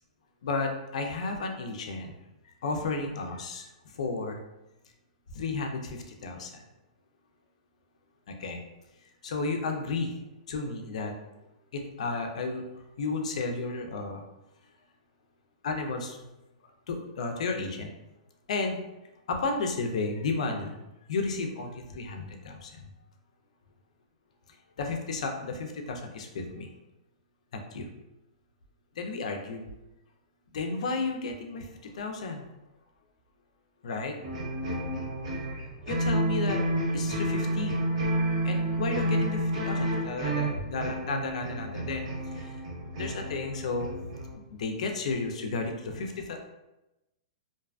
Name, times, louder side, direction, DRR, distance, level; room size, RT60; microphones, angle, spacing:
voice 1, 0.4-2.1 2.6-3.7 3.9-4.4 5.3-6.6 8.3-8.6 9.2-10.2 10.5-11.1 11.7-12.6 13.0-14.2 15.6-16.2 16.9-17.9 18.5-18.8 19.3-20.8 21.1-22.9 24.8-26.7 27.5-27.9 29.0-29.6 30.5-32.4 33.8-34.2 35.8-36.6 36.9-37.8 38.4-42.1 42.3-42.6 42.9-44.0 44.5-46.5, left 3 dB, 70° left, 3 dB, 0.4 m, -33 dB
sound 1, 34.2-44.3, right 1 dB, 60° right, 1.3 m, -30 dB
2.5 x 2.2 x 2.4 m, 0.96 s
hypercardioid pair, 160°, 4 cm